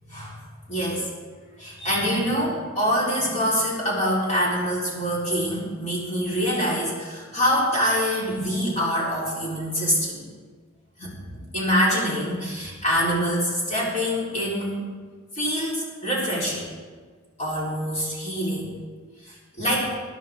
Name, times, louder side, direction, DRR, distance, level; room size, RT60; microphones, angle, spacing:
voice 1, 0.1-0.4 0.7-1.1 1.6-10.2 11.0-14.8 15.3-16.7 17.4-18.7 19.2-19.9, equal, 35° left, -6 dB, 4.2 m, -25 dB
22.0 x 11.0 x 3.7 m, 1.5 s
head